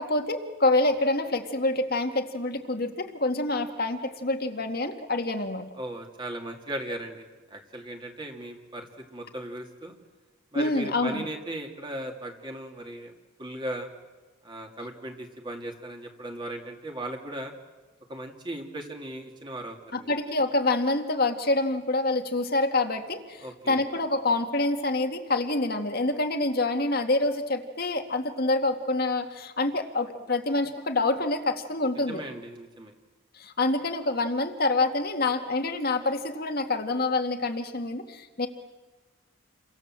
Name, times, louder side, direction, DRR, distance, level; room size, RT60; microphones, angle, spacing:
voice 1, 0.0-5.7 10.5-11.3 19.9-32.2 33.4-38.5, left 2 dB, 45° left, 6 dB, 2.1 m, -26 dB
voice 2, 5.8-7.2 7.5-10.0 10.5-13.1 13.4-13.9 14.4-17.5 18.1-20.1 23.4-23.8 32.1-32.9, right 1 dB, 25° right, 2 dB, 2.7 m, -37 dB
29.5 x 24.0 x 7.6 m, 1.3 s
head